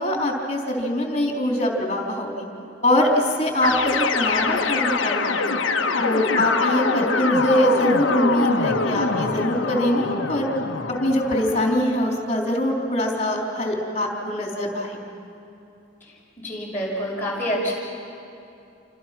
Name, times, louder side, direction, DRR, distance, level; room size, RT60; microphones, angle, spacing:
voice 1, 0.0-2.5 2.8-5.5 6.0-10.5 11.0-15.1, left 1 dB, 35° left, -1 dB, 3.9 m, -23 dB
sound 1, 3.6-11.7, left 4 dB, 90° left, 1.4 m, -24 dB
voice 2, 16.4-17.7, equal, 10° left, -6 dB, 6.4 m, -27 dB
28.5 x 25.5 x 6.1 m, 2.7 s
head